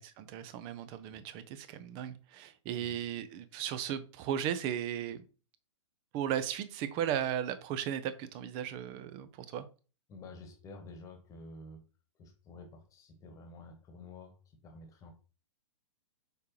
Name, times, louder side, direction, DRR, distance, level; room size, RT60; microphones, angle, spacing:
voice 1, 0.0-5.2 6.1-9.7, right 10 dB, 30° right, 12 dB, 0.7 m, -36 dB
voice 2, 10.1-11.8 12.2-15.1, left 2 dB, 20° left, 5 dB, 1.4 m, -50 dB
6.7 x 4.9 x 3.1 m, 0.35 s
figure-of-eight pair, 110°, 17 cm